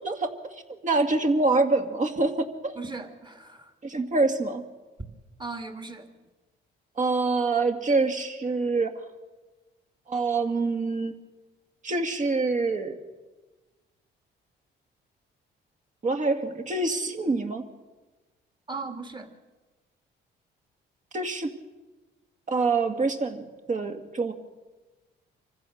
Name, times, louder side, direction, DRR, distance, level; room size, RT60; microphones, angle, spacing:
voice 1, 0.0-2.8 3.8-4.6 7.0-8.9 10.1-11.1 11.8-13.0 16.0-17.6 21.1-21.5 22.5-24.3, right 3 dB, 40° right, 6 dB, 2.2 m, -26 dB
voice 2, 2.8-3.7 5.4-6.0 18.7-19.3, right 3 dB, 25° right, 6 dB, 2.5 m, -37 dB
26.0 x 15.5 x 6.7 m, 1.2 s
cardioid pair, 90°, 20 cm